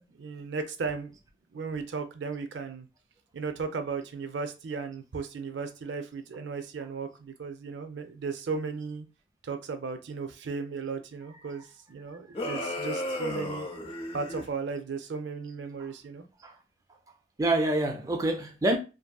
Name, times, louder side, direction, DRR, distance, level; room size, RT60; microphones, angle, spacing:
voice 1, 0.1-1.2 1.5-2.9 3.3-9.1 9.4-13.7 14.1-16.2, right 4 dB, 80° right, 0.4 m, -35 dB
sound 1, 12.3-14.5, left 1 dB, 30° left, 0.5 m, -34 dB
voice 2, 17.4-18.8, right 1 dB, 20° right, 0.3 m, -27 dB
2.6 x 2.6 x 2.2 m
head